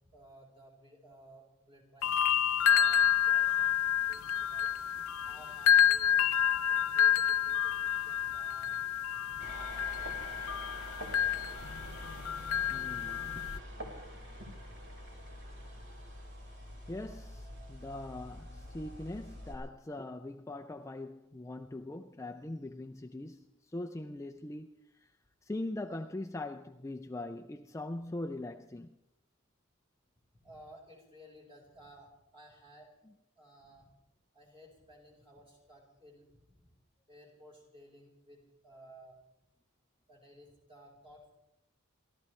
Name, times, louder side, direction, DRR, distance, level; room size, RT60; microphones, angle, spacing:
voice 1, 0.1-2.2 2.7-4.7 5.2-6.2 6.7-8.9 9.2-10.6 14.1-14.3 30.3-32.9 33.4-33.9 34.3-36.7 37.1-39.2 40.1-41.3, equal, 25° right, 4.6 m, -57 dB
sound 1, 2.0-13.6, left 10 dB, 80° left, 0.4 m, -29 dB
sound 2, 9.4-19.5, equal, 55° right, 3.9 m, -46 dB
voice 2, 12.7-13.5 16.9-25.1 25.4-29.0, left 2 dB, 15° left, 0.4 m, -41 dB
29.0 x 14.0 x 3.2 m
head